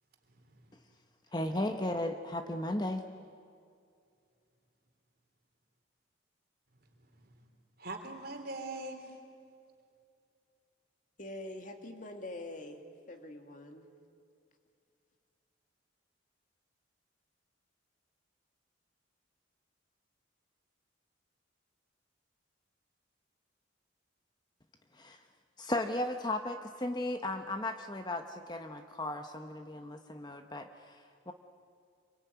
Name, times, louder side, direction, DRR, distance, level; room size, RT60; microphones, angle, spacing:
voice 1, 0.3-0.7 7.0-7.4 7.8-9.2, right 2 dB, 50° right, 4 dB, 3.4 m, -43 dB
voice 2, 1.3-3.1 24.9-25.2 25.6-31.3, left 1 dB, 20° left, 6 dB, 0.9 m, -35 dB
voice 3, 11.2-12.8 13.1-13.9, left 1 dB, 40° left, 5 dB, 2.1 m, -44 dB
26.5 x 23.5 x 9.4 m, 2.4 s
head